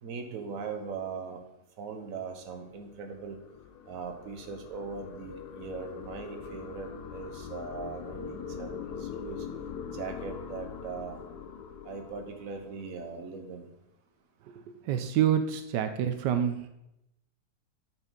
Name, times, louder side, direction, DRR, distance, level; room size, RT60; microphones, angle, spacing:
voice 1, 0.0-1.4 1.8-3.4 3.9-9.4 9.9-11.2 11.8-13.7, right 5 dB, 55° right, 5 dB, 1.4 m, -40 dB
sound 1, 2.5-13.1, left 6 dB, 70° left, 1.2 m, -42 dB
voice 2, 14.5-16.7, right 9 dB, 85° right, 9 dB, 1.3 m, -28 dB
9.6 x 6.2 x 3.9 m, 0.84 s
omnidirectional pair, 1.8 m